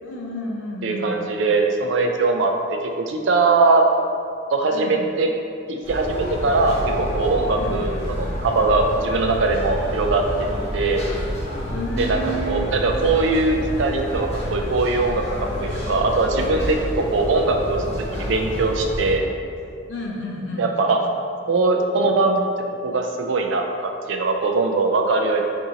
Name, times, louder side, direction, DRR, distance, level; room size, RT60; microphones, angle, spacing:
voice 1, 0.0-1.1 4.7-5.1 7.6-7.8 11.7-12.7 19.9-20.7, equal, 75° left, -2 dB, 0.7 m, -31 dB
voice 2, 0.8-3.9 4.5-5.3 5.7-10.5 10.7-11.0 12.0-15.2 15.6-19.2 20.6-21.0 21.5-22.5 22.8-25.4, right 3 dB, 70° right, 3 dB, 0.4 m, -21 dB
sound 1, 5.8-19.1, equal, 30° left, 1.5 m, -28 dB
5.3 x 2.7 x 2.8 m, 2.4 s
head